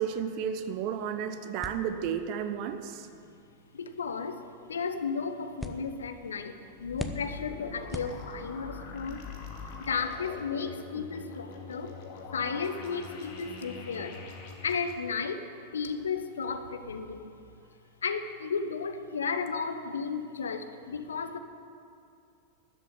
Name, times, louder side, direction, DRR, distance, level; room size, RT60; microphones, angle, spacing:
voice 1, 0.0-3.1, right 8 dB, 45° right, 10 dB, 0.9 m, -32 dB
sound 1, 1.6-8.7, equal, ahead, 0.9 m, -45 dB
voice 2, 3.7-9.3 9.8-12.0 12.3-14.2 14.6-15.5 15.7-17.3 18.0-21.4, left 5 dB, 70° left, 8 dB, 0.9 m, -34 dB
sound 2, 6.7-14.9, left 5 dB, 45° left, 2.1 m, -43 dB
12.5 x 8.0 x 9.4 m, 2.4 s
figure-of-eight pair, 90°, 0 cm